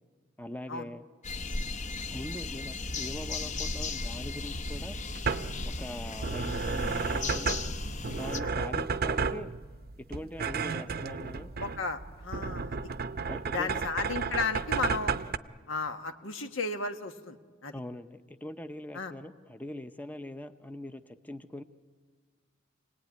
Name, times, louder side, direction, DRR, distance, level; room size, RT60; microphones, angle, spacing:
voice 1, 0.4-1.0 2.1-5.0 5.6-7.6 8.0-9.5 10.1-11.5 12.9-13.9 17.7-21.6, left 1 dB, 10° left, 9 dB, 0.7 m, -42 dB
sound 1, 1.2-8.4, left 3 dB, 40° left, 0.8 m, -36 dB
sound 2, 4.7-15.4, right 5 dB, 50° right, 0.7 m, -33 dB
voice 2, 11.6-12.9 13.5-15.1 15.7-17.4 17.6-17.7 18.9-19.1, left 4 dB, 85° left, 6 dB, 1.5 m, -34 dB
27.5 x 19.0 x 9.6 m, 1.6 s
head